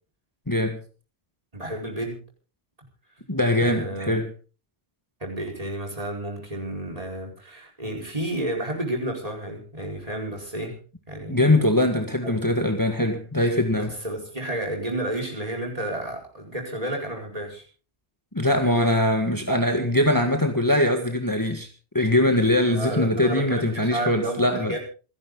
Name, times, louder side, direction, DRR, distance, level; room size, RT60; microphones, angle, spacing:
voice 1, 0.5-0.8 3.3-4.3 11.3-13.9 18.3-21.7 21.9-24.8, left 1 dB, 20° left, 1.8 m, -22 dB
voice 2, 1.5-2.2 3.6-4.2 5.2-10.8 11.1-11.5 12.2-12.4 13.9-17.6 22.7-24.8, right 1 dB, 35° right, 4.8 m, -31 dB
27.5 x 11.0 x 3.9 m
omnidirectional pair, 1.1 m